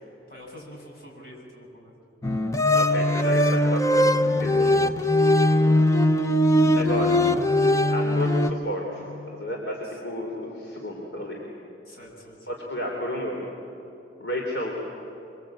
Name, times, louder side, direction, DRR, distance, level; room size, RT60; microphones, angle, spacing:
voice 1, 0.1-1.9 5.7-6.3 9.8-10.0 11.8-12.5, equal, 55° left, -2 dB, 7.8 m, -47 dB
sound 1, 2.2-8.5, left 1 dB, 20° left, 0.7 m, -20 dB
voice 2, 2.7-4.8 6.7-7.2 7.9-11.4 12.5-13.5 14.2-14.8, equal, 80° left, -1 dB, 3.5 m, -32 dB
24.5 x 24.5 x 8.7 m, 2.9 s
head